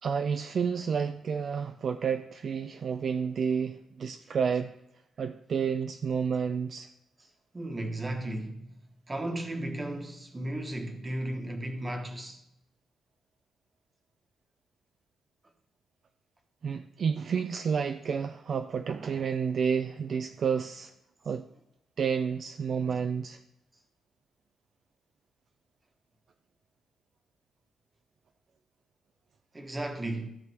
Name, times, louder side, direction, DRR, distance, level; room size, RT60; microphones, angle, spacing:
voice 1, 0.0-4.8 5.2-6.9 16.6-20.9 21.3-21.5 22.0-23.4, right 6 dB, 45° right, 0.4 m, -30 dB
voice 2, 7.5-8.8 9.1-12.4 29.5-30.3, right 1 dB, 20° right, 1.2 m, -35 dB
14.0 x 6.7 x 3.4 m
cardioid pair, 145°, 0 cm